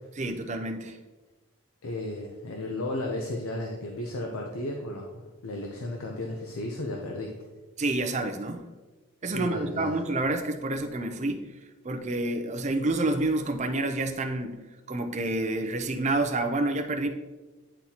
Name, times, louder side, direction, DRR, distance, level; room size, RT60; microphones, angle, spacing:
voice 1, 0.2-1.0 7.8-8.6 9.2-11.5 11.8-14.6 14.9-17.1, right 2 dB, 30° right, 6 dB, 0.5 m, -28 dB
voice 2, 1.8-7.3 9.3-10.0, left 1 dB, 80° left, 1 dB, 0.7 m, -34 dB
10.0 x 4.0 x 2.8 m, 1.2 s
head